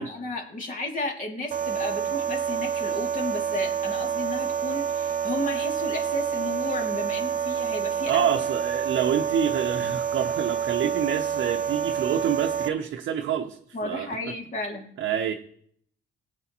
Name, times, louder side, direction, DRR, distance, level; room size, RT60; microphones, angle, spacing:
voice 1, 0.0-8.3 13.7-14.8, left 2 dB, 40° left, 2.6 m, -33 dB
sound 1, 1.5-12.7, right 7 dB, 40° right, 0.5 m, -28 dB
voice 2, 8.1-14.1 15.0-15.3, right 9 dB, 70° right, 0.8 m, -27 dB
18.5 x 8.1 x 3.0 m
cardioid pair, 90°, 20 cm